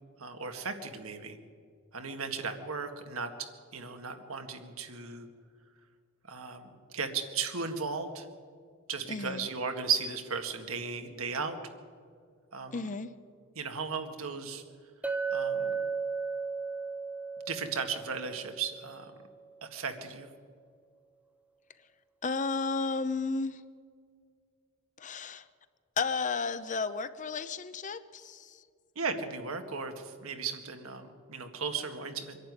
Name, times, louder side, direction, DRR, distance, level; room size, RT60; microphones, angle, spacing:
voice 1, 0.2-1.4 1.9-5.3 6.3-8.3 8.9-11.6 12.5-12.8 13.6-14.6 15.3-15.8 17.5-19.1 19.6-20.3 29.0-32.4, right 5 dB, 75° right, 6 dB, 1.9 m, -36 dB
voice 2, 9.1-9.5 12.7-13.1 21.8-21.9 22.2-23.7 25.0-25.5 26.0-28.6, left 4 dB, 35° left, 13 dB, 0.7 m, -33 dB
Chink clink, 15.0-19.2, right 5 dB, 5° right, 0.8 m, -35 dB
24.0 x 11.5 x 9.6 m, 2.1 s
head